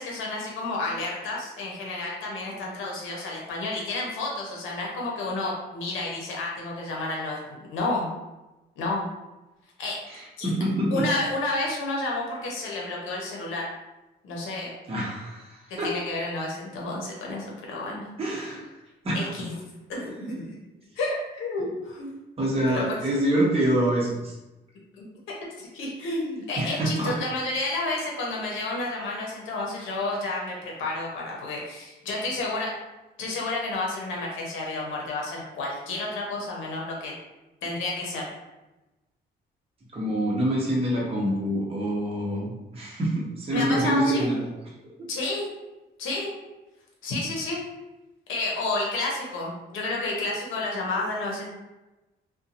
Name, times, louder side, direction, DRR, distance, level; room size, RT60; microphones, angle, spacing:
voice 1, 0.0-7.4 7.7-8.1 8.8-9.0 9.8-10.0 10.4-10.5 10.9-13.7 14.2-14.7 15.8-18.6 19.1-19.5 19.9-20.6 21.0-22.1 22.7-23.0 25.0-25.1 25.6-32.7 33.2-37.1 37.6-38.3 43.5-44.3 45.1-45.5 46.0-46.3 47.0-47.6 48.3-51.5, left 2 dB, 85° left, -2 dB, 0.8 m, -30 dB
voice 2, 10.1-11.0 14.9-15.9 18.2-18.6 19.0-19.3 22.4-24.4 26.6-27.1 39.9-44.4 45.0-45.1, right 1 dB, 30° right, -5 dB, 0.8 m, -26 dB
2.7 x 2.2 x 2.5 m, 1.0 s
cardioid pair, 90°, 20 cm